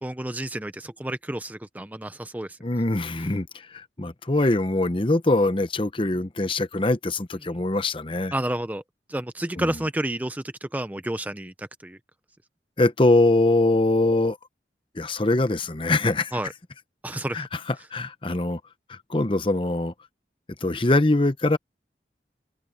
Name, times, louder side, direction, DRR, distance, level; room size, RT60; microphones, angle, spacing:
voice 1, 0.0-2.6 8.3-8.8 9.1-12.0 16.3-16.5 17.0-17.4, right 1 dB, 10° right, 0.5 m, -30 dB
voice 2, 2.6-3.5 3.7-8.3 9.6-9.7 12.8-14.4 15.0-16.4 17.3-18.6 18.9-19.9 20.6-21.6, left 2 dB, 30° left, 0.9 m, -23 dB
head